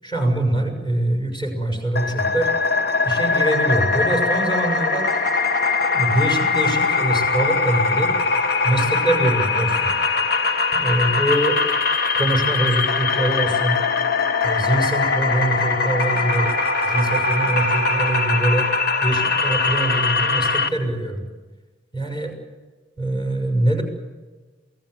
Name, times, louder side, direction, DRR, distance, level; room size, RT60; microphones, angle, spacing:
voice 1, 0.0-2.5 3.0-5.1 5.9-8.1 8.6-9.9 10.7-11.6 12.1-13.8 14.4-16.5 16.8-18.7 19.0-21.2 21.9-22.3 23.0-23.8, right 1 dB, 25° left, 3 dB, 6.6 m, -23 dB
sound 1, 2.0-20.7, left 4 dB, 55° left, 1.3 m, -21 dB
28.5 x 18.0 x 8.2 m, 1.3 s
head